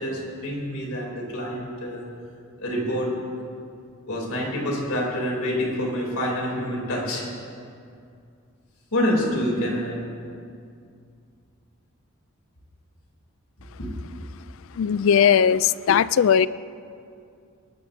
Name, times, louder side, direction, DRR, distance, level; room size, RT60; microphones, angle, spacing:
voice 1, 0.0-2.1 2.6-3.2 4.1-7.3 8.9-10.1 13.8-13.9, equal, 85° left, -2 dB, 3.3 m, -27 dB
voice 2, 14.8-16.5, left 8 dB, 65° left, 18 dB, 0.3 m, -18 dB
20.0 x 13.0 x 2.7 m, 2.4 s
head